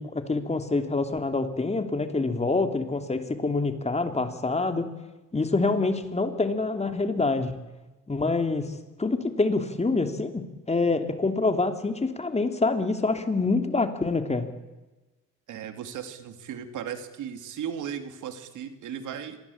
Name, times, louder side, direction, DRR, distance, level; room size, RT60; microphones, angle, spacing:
voice 1, 0.0-4.9 5.3-7.5 8.1-8.7 9.0-14.5, left 3 dB, 20° left, 7 dB, 2.9 m, -26 dB
voice 2, 15.5-19.4, right 8 dB, 80° right, 8 dB, 2.8 m, -36 dB
26.0 x 20.5 x 8.7 m, 1.1 s
cardioid pair, 90°, 30 cm